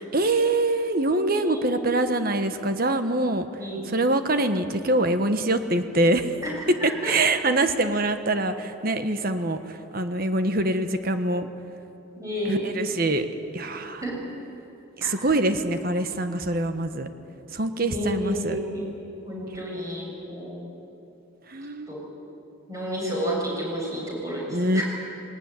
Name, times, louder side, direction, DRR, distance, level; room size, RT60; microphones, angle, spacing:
voice 1, 0.0-3.5 3.9-6.3 6.8-11.5 12.5-13.3 13.5-14.0 15.0-17.1 17.5-18.6 21.5-22.0 24.5-24.8, right 2 dB, 45° right, 8 dB, 1.3 m, -24 dB
voice 2, 1.2-1.9 3.6-4.0 6.4-7.1 12.2-12.7 14.0-14.2 15.0-15.1 17.8-18.9 19.2-20.6 21.9-22.1 22.7-24.8, equal, 15° right, -3 dB, 7.0 m, -31 dB
20.0 x 19.5 x 9.7 m, 3.0 s
head